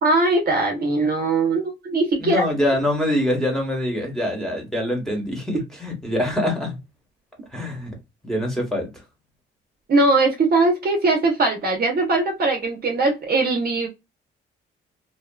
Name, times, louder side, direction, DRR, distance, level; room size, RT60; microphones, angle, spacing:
voice 1, 0.0-2.5 9.9-13.9, right 2 dB, 50° right, 0.9 m, -20 dB
voice 2, 2.2-6.8 7.5-7.9 8.2-8.9, left 1 dB, ahead, 1.3 m, -24 dB
2.8 x 2.4 x 2.3 m
cardioid pair, 90°, 20 cm